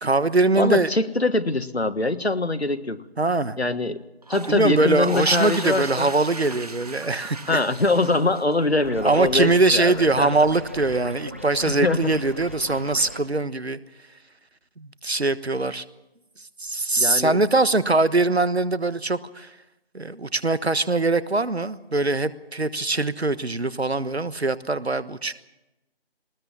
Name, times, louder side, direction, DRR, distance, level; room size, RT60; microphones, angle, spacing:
voice 1, 0.0-0.9 3.2-3.6 4.5-7.6 9.0-13.8 14.8-15.8 16.6-19.5 19.9-25.3, right 2 dB, 85° right, 15 dB, 1.3 m, -22 dB
voice 2, 0.5-3.0 3.6-4.0 4.3-6.1 7.5-10.3 11.7-12.1 17.0-17.4, left 2 dB, 85° left, 11 dB, 1.5 m, -23 dB
sound 1, 4.2-8.8, right 3 dB, 40° right, 1.5 m, -36 dB
sound 2, 8.8-13.2, left 1 dB, 15° right, 0.8 m, -38 dB
20.0 x 20.0 x 7.2 m, 0.99 s
figure-of-eight pair, 165°, 31 cm